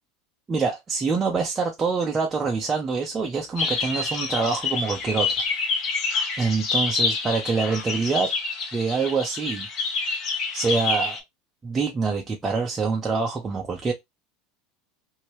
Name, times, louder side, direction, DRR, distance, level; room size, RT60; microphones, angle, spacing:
voice 1, 0.5-5.3 6.4-8.3 8.7-9.7 10.5-11.2 11.6-13.9, right 4 dB, 20° right, 0.6 m, -25 dB
sound 1, 3.6-11.2, left 4 dB, 45° left, 1.1 m, -27 dB
2.8 x 2.7 x 3.1 m
supercardioid pair, 120°, 0 cm